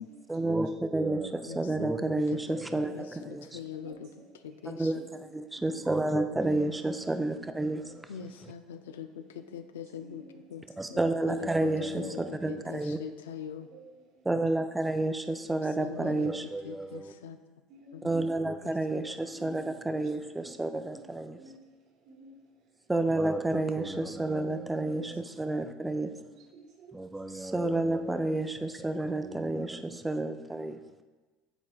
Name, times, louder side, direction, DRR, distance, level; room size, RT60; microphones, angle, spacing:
voice 1, 0.3-3.6 4.6-8.1 8.4-8.5 10.8-13.0 14.2-17.1 18.0-21.4 22.9-26.1 26.9-30.8, right 2 dB, 10° right, 7 dB, 0.5 m, -30 dB
voice 2, 1.5-4.1 4.4-4.9 6.1-6.5 8.1-13.7 15.5-17.4 17.9-18.0 18.6-18.7 23.5-24.1, left 8 dB, 85° left, 9 dB, 0.4 m, -43 dB
voice 3, 3.7-5.0 5.6-5.9 10.0-10.4 10.7-11.2 12.1-12.3 13.7-14.3 17.7-18.3 19.3-20.1 20.5-21.1 21.4-22.4 22.7-22.8 25.4-25.6 26.0-27.0, right 2 dB, 60° right, 0 dB, 1.3 m, -53 dB
10.0 x 4.1 x 2.4 m, 1.2 s
hypercardioid pair, 80°, 0 cm